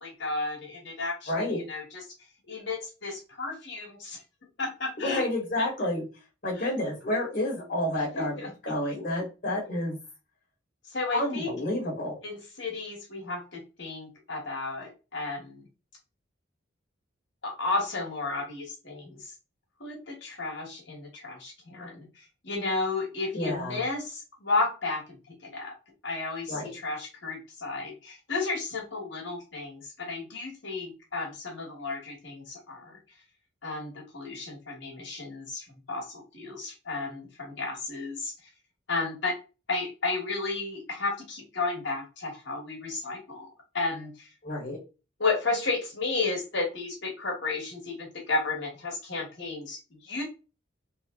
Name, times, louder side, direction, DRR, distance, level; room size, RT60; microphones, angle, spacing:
voice 1, 0.0-2.0 2.5-4.2 4.6-5.2 5.6-5.7 8.1-8.5 10.9-11.5 12.2-15.7 17.4-19.3 19.8-25.0 25.5-25.7 26.0-33.0 33.6-38.3 38.9-39.4 39.7-43.5 43.7-44.3 45.2-50.2, left 3 dB, 65° left, -2 dB, 1.7 m, -33 dB
voice 2, 1.3-1.6 5.0-6.1 6.4-10.0 11.1-12.2 23.3-23.8 26.5-26.8 44.4-44.8, left 1 dB, 45° left, -3 dB, 1.8 m, -30 dB
4.0 x 3.0 x 3.7 m, 0.31 s
head